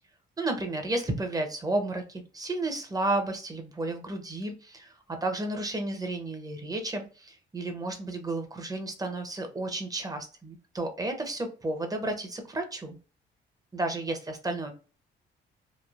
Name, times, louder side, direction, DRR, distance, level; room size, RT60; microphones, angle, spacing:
voice 1, 0.4-13.0 13.7-14.7, right 2 dB, 20° right, 5 dB, 0.7 m, -32 dB
3.1 x 2.3 x 2.4 m, 0.35 s
cardioid pair, 90°, 20 cm